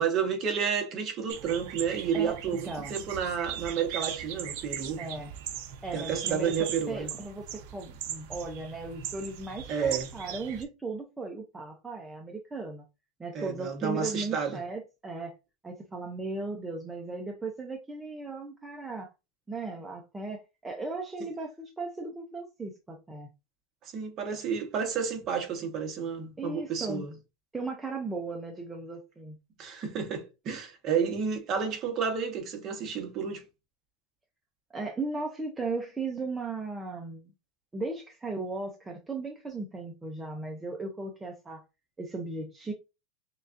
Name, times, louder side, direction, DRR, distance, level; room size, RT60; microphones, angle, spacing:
voice 1, 0.0-5.0 5.9-7.1 9.7-10.1 13.3-14.6 23.8-27.1 29.6-33.4, right 6 dB, 30° right, 1.1 m, -31 dB
sound 1, 1.3-10.6, right 9 dB, 60° right, 0.7 m, -39 dB
voice 2, 2.6-3.0 5.0-5.3 5.8-6.5 6.9-12.8 13.2-15.3 15.6-19.1 19.5-23.3 26.4-27.0 27.5-29.4 34.7-37.3 37.7-41.6 42.0-42.7, right 3 dB, 10° right, 0.5 m, -36 dB
6.5 x 2.4 x 2.6 m
supercardioid pair, 165°, 0 cm